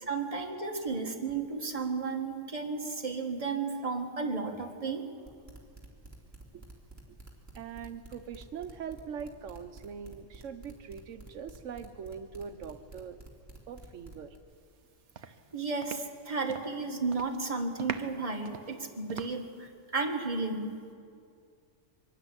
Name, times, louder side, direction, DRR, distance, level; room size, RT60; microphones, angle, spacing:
voice 1, 0.1-5.0 15.5-20.8, right 4 dB, 30° right, 2 dB, 1.9 m, -33 dB
sound 1, 5.3-14.4, right 2 dB, 15° right, 3.1 m, -50 dB
voice 2, 7.5-13.2 13.7-14.4, right 7 dB, 90° right, 9 dB, 1.2 m, -42 dB
sound 2, 14.6-14.9 15.2-16.8 17.1-17.4 17.8-19.6, right 7 dB, 70° right, 1.1 m, -42 dB
23.5 x 12.5 x 9.9 m, 2.3 s
omnidirectional pair, 1.3 m